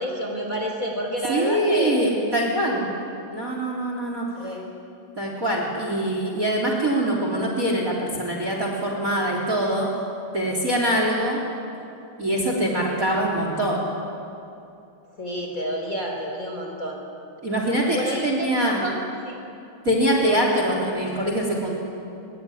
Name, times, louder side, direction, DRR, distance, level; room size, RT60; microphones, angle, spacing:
voice 1, 0.0-2.0 4.4-4.7 15.2-17.0 17.9-18.9 19.2-19.4, equal, 25° left, 1 dB, 4.3 m, -29 dB
voice 2, 1.3-2.9 3.3-4.3 5.2-9.9 10.3-11.4 12.2-13.9 17.4-18.8 19.8-21.7, right 1 dB, 25° right, 0 dB, 3.6 m, -23 dB
25.0 x 23.0 x 9.9 m, 2.6 s
omnidirectional pair, 3.9 m